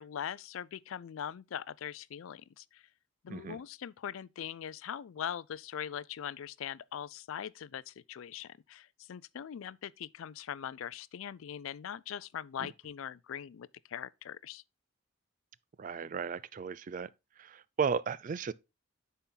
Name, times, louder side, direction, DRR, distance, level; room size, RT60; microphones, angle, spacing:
voice 1, 0.0-2.8 3.2-14.6, left 9 dB, 70° left, 0.4 m, -41 dB
voice 2, 15.8-17.1 17.4-18.5, right 6 dB, 40° right, 0.3 m, -35 dB
9.8 x 4.2 x 3.8 m
head